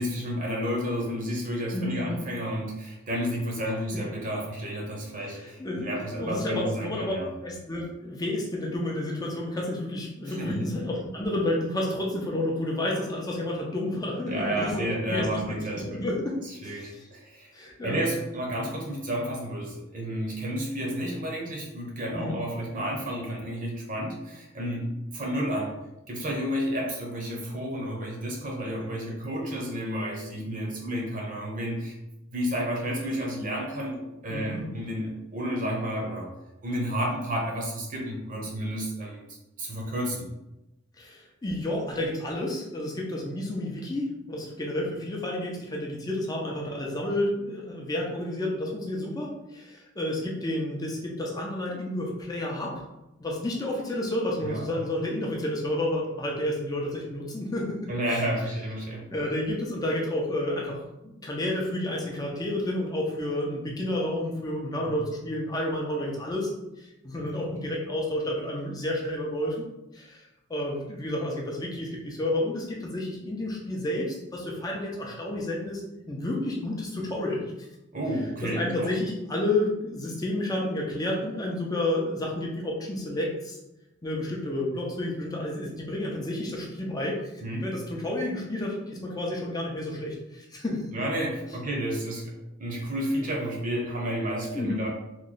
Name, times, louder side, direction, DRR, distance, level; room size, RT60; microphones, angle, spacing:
voice 1, 0.0-7.3 10.3-10.7 14.2-16.0 16.4-17.5 17.8-25.7 26.1-32.0 32.3-36.3 36.6-39.3 39.6-40.3 54.4-54.7 57.9-59.1 64.9-65.0 67.2-67.3 77.9-78.9 87.4-87.7 90.9-94.9, equal, 45° right, -1 dB, 0.8 m, -31 dB
voice 2, 1.7-2.2 5.3-5.9 6.2-7.1 7.4-14.8 15.1-15.6 15.9-16.3 16.6-17.1 17.5-18.0 22.1-22.4 34.3-34.7 41.0-52.8 53.2-57.9 59.1-66.5 66.8-69.6 69.9-77.4 78.5-83.6 84.0-87.2 87.6-90.8 94.5-94.8, left 1 dB, 20° left, -2 dB, 0.5 m, -30 dB
3.1 x 2.3 x 3.9 m, 0.93 s
head